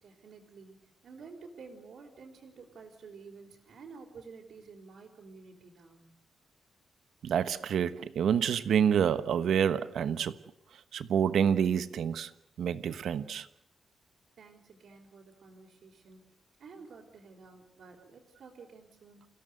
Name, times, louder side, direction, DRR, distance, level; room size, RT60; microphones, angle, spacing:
voice 1, 0.0-6.1 14.4-19.3, right 4 dB, 65° right, 4.1 m, -51 dB
voice 2, 7.2-10.3 10.9-12.3 12.6-13.5, right 8 dB, 85° right, 1.1 m, -28 dB
29.0 x 16.5 x 8.0 m
wide cardioid pair, 170°, 0 cm